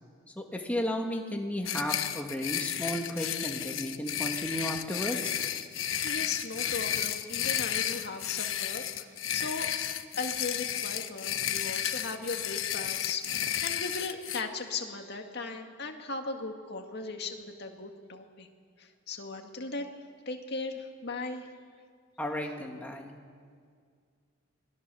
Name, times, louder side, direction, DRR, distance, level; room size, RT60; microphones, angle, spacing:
voice 1, 0.4-5.3 22.2-23.2, equal, 5° left, 1 dB, 2.1 m, -34 dB
sound 1, 1.6-14.4, left 10 dB, 70° left, 1.0 m, -32 dB
voice 2, 6.0-9.0 9.3-9.7 10.2-18.5 18.8-19.9 20.3-21.5, left 3 dB, 55° left, 4 dB, 2.0 m, -37 dB
26.5 x 20.0 x 7.1 m, 2.1 s
head